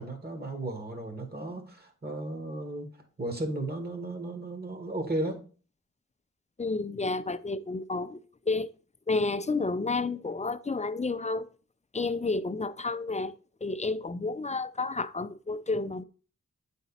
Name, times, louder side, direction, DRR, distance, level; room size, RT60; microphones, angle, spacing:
voice 1, 0.0-2.9 3.2-5.4, right 1 dB, 30° right, 1.9 m, -35 dB
voice 2, 6.6-8.2 8.5-8.7 9.1-11.5 11.9-13.3 13.6-16.0, left 3 dB, 25° left, 0.4 m, -30 dB
9.2 x 4.0 x 4.1 m
wide cardioid pair, 70°, 31 cm